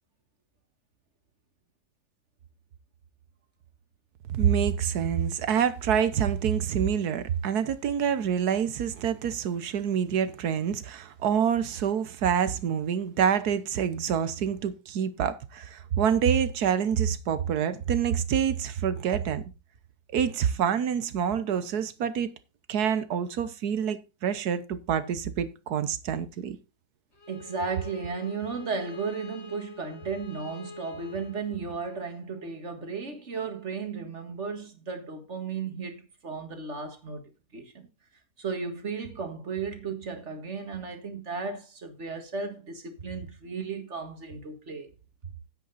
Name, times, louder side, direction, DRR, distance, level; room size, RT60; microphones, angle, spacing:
voice 1, 4.3-19.4 20.1-22.3 22.7-26.6, right 8 dB, 90° right, 1.5 m, -27 dB
Bowed string instrument, 27.1-32.1, left 4 dB, 40° left, 5.0 m, -46 dB
voice 2, 27.3-37.2 37.5-37.9 38.4-44.9 45.2-45.3, right 5 dB, 50° right, 2.1 m, -35 dB
9.8 x 8.1 x 4.1 m
omnidirectional pair, 1.6 m